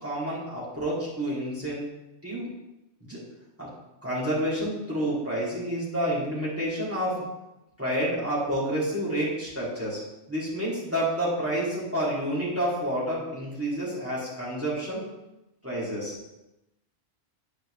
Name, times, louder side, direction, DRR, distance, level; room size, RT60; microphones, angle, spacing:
voice 1, 0.0-1.9 2.2-2.5 3.0-3.2 3.6-3.7 4.0-7.2 7.8-10.0 10.3-15.0 15.6-16.1, right 1 dB, 10° right, -9 dB, 2.7 m, -29 dB
9.8 x 5.0 x 3.3 m, 0.94 s
omnidirectional pair, 1.3 m